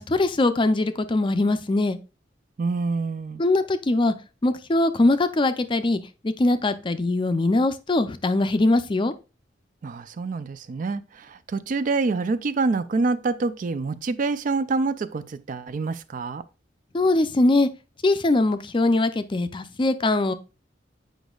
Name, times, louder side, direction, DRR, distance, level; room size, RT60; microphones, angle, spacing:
voice 1, 0.0-2.0 3.4-4.1 4.4-9.1 16.9-17.7 18.0-20.3, left 2 dB, 30° left, 0.5 m, -22 dB
voice 2, 2.6-3.4 9.8-16.4, right 3 dB, 45° right, 0.4 m, -26 dB
8.0 x 5.1 x 2.3 m
head